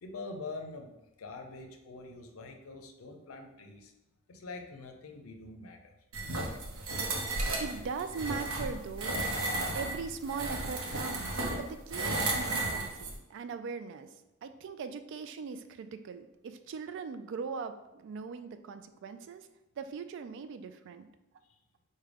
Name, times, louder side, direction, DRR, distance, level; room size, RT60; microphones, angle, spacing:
voice 1, 0.0-3.9 4.3-6.0, left 3 dB, 85° left, 4 dB, 0.5 m, -45 dB
sound 1, 6.1-13.2, right 2 dB, 85° right, 0.7 m, -34 dB
voice 2, 7.6-9.2 9.7-14.1 14.4-19.5 19.8-21.1, right 5 dB, 60° right, 9 dB, 0.3 m, -40 dB
4.8 x 2.2 x 3.3 m, 0.95 s
head